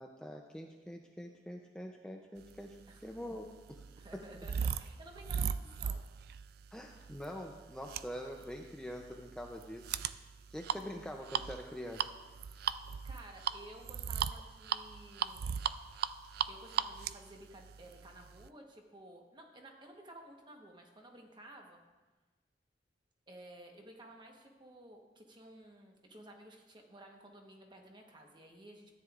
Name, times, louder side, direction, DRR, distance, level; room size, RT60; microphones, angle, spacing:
voice 1, 0.0-2.8 3.0-3.8 4.1-4.2 6.7-9.9 10.5-12.1 12.5-12.8, equal, 5° left, 1 dB, 0.5 m, -45 dB
sound 1, 2.8-18.5, right 7 dB, 60° right, 0.3 m, -38 dB
voice 2, 4.0-6.0 13.0-15.6 16.5-21.8 23.3-28.9, right 1 dB, 25° right, 2 dB, 1.1 m, -54 dB
14.0 x 9.5 x 2.4 m, 1.2 s
head